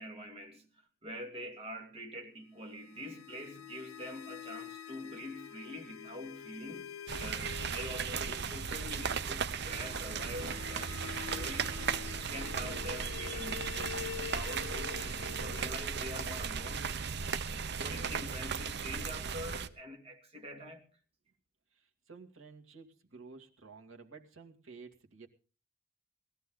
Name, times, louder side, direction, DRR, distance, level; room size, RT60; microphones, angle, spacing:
voice 1, 0.0-11.8 12.3-16.9 17.8-20.9, equal, 30° right, 2.7 m, -45 dB
sound 1, 2.6-17.6, left 10 dB, 90° left, 0.7 m, -47 dB
sound 2, 7.1-19.7, right 6 dB, 55° right, 0.8 m, -36 dB
voice 2, 21.7-25.3, right 4 dB, 80° right, 2.4 m, -52 dB
19.5 x 14.0 x 3.9 m
head